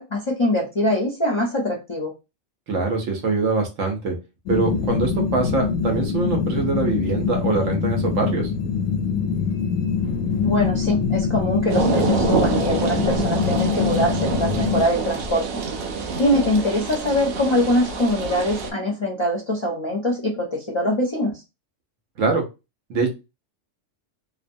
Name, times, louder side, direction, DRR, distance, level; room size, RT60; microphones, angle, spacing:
voice 1, 0.0-2.1 10.4-15.6 16.1-21.4, left 1 dB, 35° left, -1 dB, 0.4 m, -23 dB
voice 2, 2.7-4.2 4.5-8.5 22.2-22.4 22.9-23.1, right 3 dB, 80° right, 3 dB, 1.1 m, -23 dB
sound 1, 4.5-14.8, left 6 dB, 90° left, 1.0 m, -24 dB
sound 2, 11.7-18.7, right 5 dB, 60° right, 0.7 m, -26 dB
2.8 x 2.1 x 2.5 m, 0.26 s
omnidirectional pair, 1.3 m